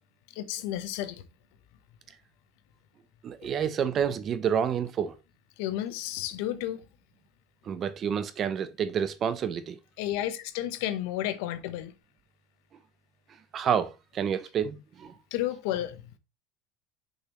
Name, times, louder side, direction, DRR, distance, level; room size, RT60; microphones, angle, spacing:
voice 1, 0.3-1.2 5.6-6.8 10.0-11.9 15.3-16.2, left 13 dB, 75° left, 0.9 m, -32 dB
voice 2, 3.2-5.1 7.7-9.8 13.5-15.1, right 8 dB, 30° right, 0.6 m, -29 dB
6.5 x 5.3 x 3.0 m
cardioid pair, 165°, 0 cm